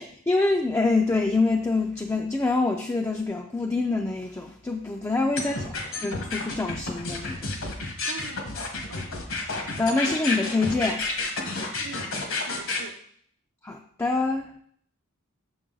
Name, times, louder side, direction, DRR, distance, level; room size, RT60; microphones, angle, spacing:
voice 1, 0.0-7.5 9.5-11.1 13.6-14.5, left 3 dB, 15° left, 2 dB, 0.4 m, -26 dB
sound 1, 5.4-12.8, left 3 dB, 65° left, 1.3 m, -30 dB
voice 2, 8.0-9.2 11.8-13.0, right 4 dB, 65° right, 8 dB, 0.7 m, -44 dB
6.3 x 6.2 x 3.8 m, 0.64 s
head